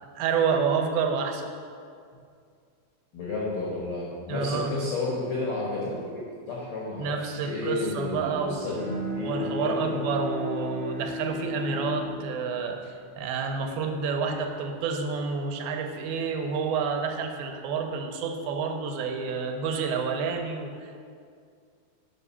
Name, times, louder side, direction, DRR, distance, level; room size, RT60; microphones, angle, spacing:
voice 1, 0.2-1.5 4.3-4.7 7.0-8.8 9.2-21.0, right 5 dB, 85° right, 4 dB, 2.4 m, -29 dB
voice 2, 3.1-6.0 6.5-7.1 7.4-8.8 9.1-10.0, left 3 dB, 80° left, -6 dB, 1.1 m, -31 dB
Bowed string instrument, 8.7-14.2, left 2 dB, 70° right, 1.1 m, -35 dB
7.4 x 5.0 x 5.6 m, 2.2 s
omnidirectional pair, 4.3 m